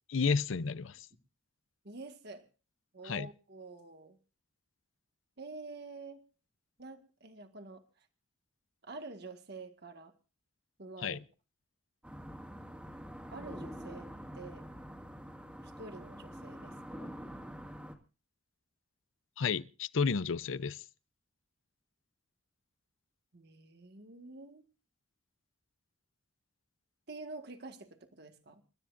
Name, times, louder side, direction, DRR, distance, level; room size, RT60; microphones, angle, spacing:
voice 1, 0.1-1.1 3.0-3.3 11.0-11.2 19.4-20.8, left 5 dB, 85° left, 0.6 m, -32 dB
voice 2, 1.8-2.5 2.9-4.2 5.4-6.2 6.8-8.1 8.8-10.1 10.8-11.2 13.3-14.7 15.6-17.1 23.3-24.7 27.1-28.6, right 3 dB, 55° right, 1.7 m, -48 dB
sound 1, 12.0-18.0, equal, 5° right, 2.0 m, -46 dB
28.5 x 13.0 x 2.6 m
head